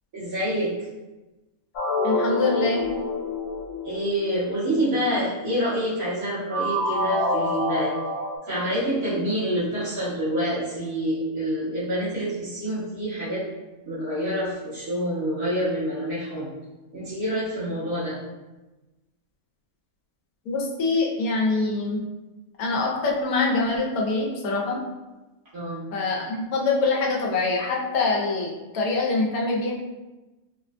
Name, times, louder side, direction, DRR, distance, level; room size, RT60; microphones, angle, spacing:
voice 1, 0.1-0.7 3.8-7.9 8.5-13.5 13.8-16.5 16.9-18.2 25.5-25.9, equal, 90° right, -11 dB, 2.1 m, -27 dB
sound 1, 1.8-4.7 6.5-8.4, left 1 dB, 55° left, 0.7 m, -27 dB
voice 2, 2.0-2.9 20.4-22.0 22.6-24.8 25.9-29.7, left 3 dB, 80° left, -2 dB, 1.1 m, -24 dB
4.2 x 2.2 x 2.5 m, 1.1 s
omnidirectional pair, 1.5 m